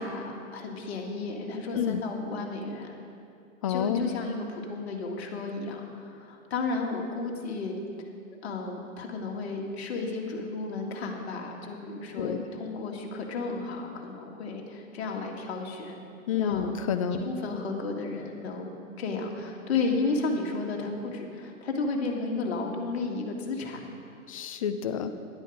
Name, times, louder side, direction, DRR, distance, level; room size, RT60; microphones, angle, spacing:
voice 1, 0.0-3.0 3.7-7.8 8.4-16.0 16.3-16.7 17.1-23.9, left 3 dB, 50° left, 1 dB, 1.9 m, -33 dB
voice 2, 3.6-4.1 12.2-12.5 16.3-17.3 24.3-25.1, left 8 dB, 25° left, 9 dB, 0.5 m, -29 dB
11.0 x 11.0 x 5.1 m, 2.4 s
figure-of-eight pair, 120°, 41 cm